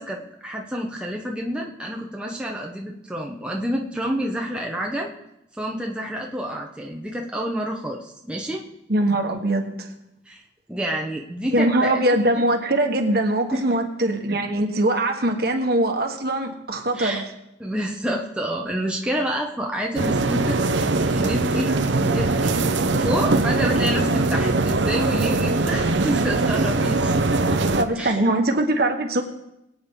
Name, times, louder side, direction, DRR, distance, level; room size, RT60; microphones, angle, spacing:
voice 1, 0.0-5.1 5.5-8.6 10.3-10.4 10.7-12.0 13.5-13.6 16.9-17.2 17.6-22.7 23.0-27.6 27.9-28.2, equal, 5° right, -1 dB, 1.0 m, -28 dB
voice 2, 8.9-9.9 11.5-17.2 27.8-29.2, right 1 dB, 55° right, 3 dB, 1.4 m, -22 dB
sound 1, 19.9-27.8, right 3 dB, 75° right, 0.8 m, -21 dB
22.5 x 8.7 x 3.8 m, 0.87 s
head